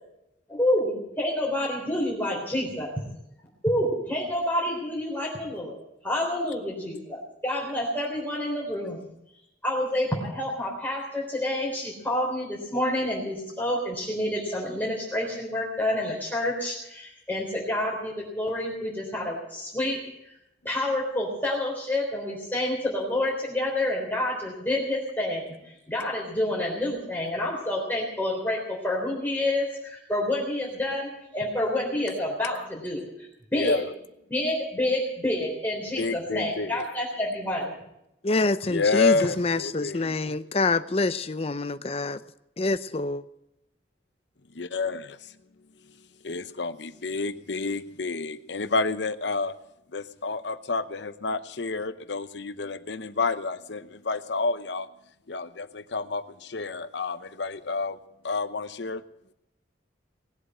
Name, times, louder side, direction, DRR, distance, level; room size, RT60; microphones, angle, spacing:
voice 1, 0.5-2.9 3.6-9.1 9.6-20.3 20.6-33.9 34.3-37.8, left 1 dB, 10° left, -3 dB, 3.6 m, -28 dB
voice 2, 36.0-36.8 38.7-40.2 44.5-45.2 46.2-49.6 49.9-54.9 55.3-58.0 58.2-59.0, left 4 dB, 70° left, 12 dB, 0.9 m, -29 dB
voice 3, 38.2-42.2 42.6-43.2, left 3 dB, 30° left, 13 dB, 0.6 m, -26 dB
19.5 x 8.1 x 8.9 m, 0.84 s
head